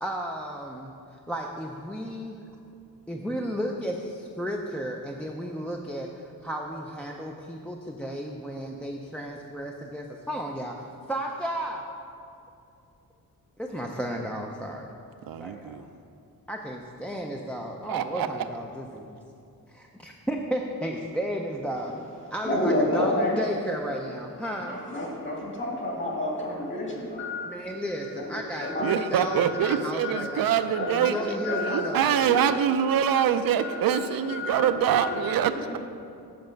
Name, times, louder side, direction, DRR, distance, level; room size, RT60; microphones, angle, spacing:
voice 1, 0.0-2.5 3.1-11.9 13.6-14.9 15.4-15.9 16.5-19.1 19.7-22.0 22.3-24.8 27.4-30.5 30.9-32.0, equal, 5° left, -1 dB, 0.4 m, -33 dB
voice 2, 15.3-15.8 17.9-18.4 28.6-35.9, right 8 dB, 75° right, 9 dB, 0.5 m, -25 dB
voice 3, 22.4-23.4 24.4-27.7 28.0-29.0 29.3-29.7 30.0-30.4 30.7-32.6 33.0-33.1 33.6-34.0 34.3-34.7 35.0-35.2, left 1 dB, 35° left, -2 dB, 2.1 m, -30 dB
7.8 x 7.0 x 5.1 m, 2.6 s
wide cardioid pair, 125°, 36 cm